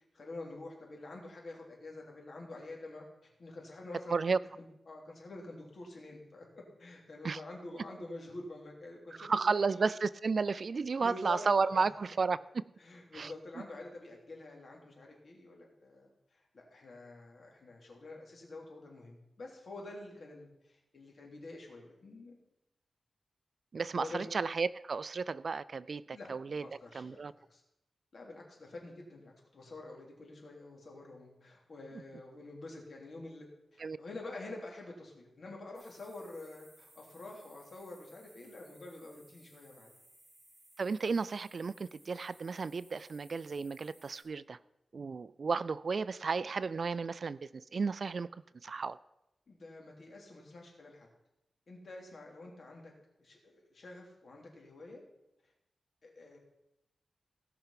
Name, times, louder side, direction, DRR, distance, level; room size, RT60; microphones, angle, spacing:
voice 1, 0.1-4.4 4.9-6.4 6.8-9.9 11.0-12.0 12.8-22.3 24.0-24.3 26.1-27.6 28.1-39.9 49.5-51.1 51.7-52.9 53.2-55.0 56.0-56.4, left 2 dB, 55° left, -1 dB, 3.1 m, -48 dB
voice 2, 9.2-12.4 13.1-13.3 23.7-26.6 26.9-27.3 33.8-34.0 40.8-44.6 44.9-48.3 48.6-49.0, right 4 dB, 50° right, 17 dB, 0.3 m, -33 dB
sound 1, 35.7-44.2, right 1 dB, 25° right, 5.1 m, -62 dB
17.0 x 5.8 x 5.8 m, 0.87 s
wide cardioid pair, 130°, 0 cm